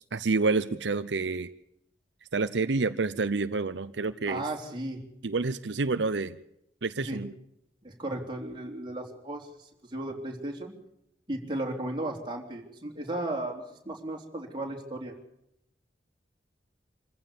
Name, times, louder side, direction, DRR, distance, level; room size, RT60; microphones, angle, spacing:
voice 1, 0.1-1.5 2.3-4.4 5.2-6.4 6.8-7.3, right 3 dB, 85° right, 11 dB, 0.7 m, -28 dB
voice 2, 4.3-5.0 7.0-7.2 7.8-10.8 11.3-15.1, right 1 dB, 25° right, 0 dB, 3.5 m, -35 dB
26.0 x 15.0 x 7.0 m, 0.77 s
head